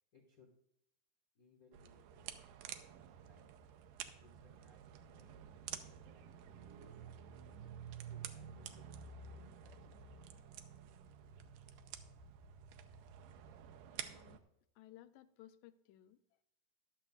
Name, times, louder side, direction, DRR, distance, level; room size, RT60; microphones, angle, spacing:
voice 1, 0.1-0.5 1.3-2.4 2.9-3.5 4.2-5.5 5.8-7.7 8.1-10.0, left 2 dB, 45° left, -3 dB, 1.1 m, -67 dB
sound 1, 1.7-14.4, right 8 dB, 85° right, 2.2 m, -51 dB
voice 2, 13.9-14.4 14.8-16.4, left 13 dB, 85° left, 12 dB, 2.1 m, -60 dB
14.5 x 11.5 x 2.4 m, 0.77 s
omnidirectional pair, 3.8 m